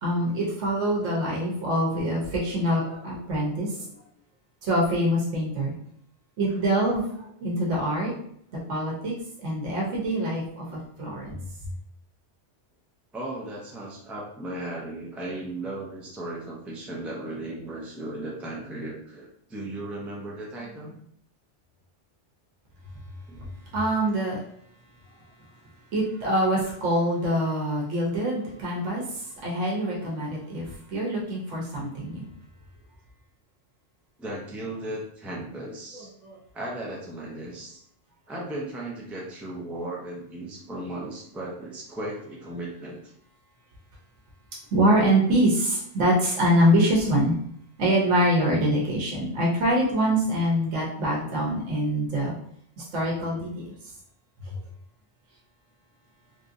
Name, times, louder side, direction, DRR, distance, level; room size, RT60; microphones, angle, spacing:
voice 1, 0.0-3.9 4.6-5.7 6.4-8.1 8.7-9.1 9.4-11.4 23.7-24.4 25.9-32.3 35.9-36.4 44.7-47.3 47.8-52.3 52.9-53.7 54.5-54.6, right 1 dB, 90° right, -3 dB, 1.2 m, -25 dB
voice 2, 13.1-21.0 23.3-23.5 34.2-36.1 36.5-37.8 38.3-43.0, right 1 dB, ahead, -3 dB, 0.4 m, -36 dB
3.4 x 2.6 x 2.5 m, 0.69 s
omnidirectional pair, 1.2 m